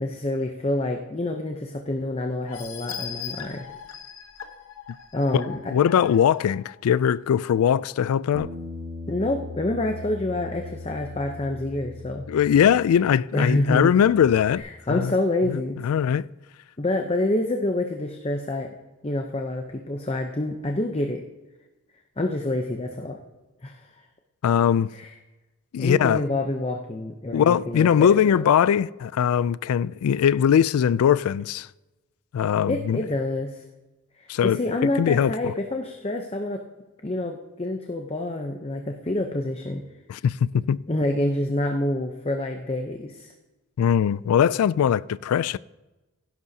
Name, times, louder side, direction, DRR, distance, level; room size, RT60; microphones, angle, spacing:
voice 1, 0.0-3.6 5.1-5.6 9.1-12.3 13.3-14.0 14.5-15.8 16.8-18.8 19.0-21.2 22.2-23.2 23.6-23.9 24.9-25.1 25.8-28.5 32.7-33.6 34.2-36.6 37.0-39.8 40.9-43.3, left 1 dB, 25° left, 0.7 m, -27 dB
sound 1, 2.5-6.9 7.4-7.5 7.9-8.0, left 8 dB, 70° left, 1.0 m, -39 dB
voice 2, 5.7-8.5 12.3-14.6 14.9-15.1 15.5-16.3 24.4-24.9 25.7-26.2 27.3-31.7 32.3-33.0 34.3-35.5 40.1-40.8 43.8-45.6, left 8 dB, 85° left, 0.3 m, -21 dB
Bass guitar, 8.3-13.1 13.4-14.6, left 2 dB, 60° right, 1.6 m, -39 dB
16.0 x 11.0 x 2.8 m
head